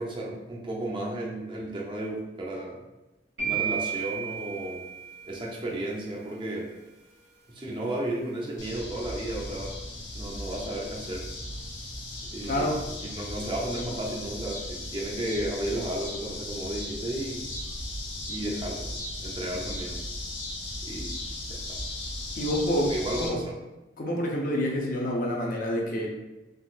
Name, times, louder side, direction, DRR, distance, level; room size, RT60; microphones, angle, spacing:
voice 1, 0.0-2.8 3.4-4.9 5.2-6.7 7.5-11.3 12.3-12.7 13.0-17.5 18.3-18.9 19.2-20.0 20.8-21.2 21.5-21.8 22.8-23.6, right 1 dB, 25° right, -3 dB, 0.5 m, -33 dB
sound 1, 3.4-5.5, right 8 dB, 90° right, 1.4 m, -32 dB
sound 2, 8.6-23.3, left 1 dB, 85° left, 0.7 m, -37 dB
voice 2, 12.4-12.8 22.4-22.9 23.2-23.4 24.0-26.1, equal, 45° left, -1 dB, 0.5 m, -27 dB
3.7 x 2.4 x 2.3 m, 1.0 s
head